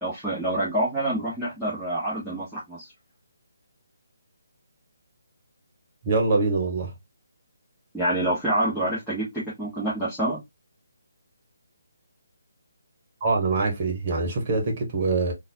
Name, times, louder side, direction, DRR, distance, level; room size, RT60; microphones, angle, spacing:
voice 1, 0.0-2.9 7.9-9.2 9.6-10.4, right 1 dB, ahead, 1.5 m, -27 dB
voice 2, 6.0-6.9 13.2-15.3, right 3 dB, 35° right, 1.4 m, -24 dB
3.8 x 2.6 x 2.8 m
figure-of-eight pair, 150°, 0 cm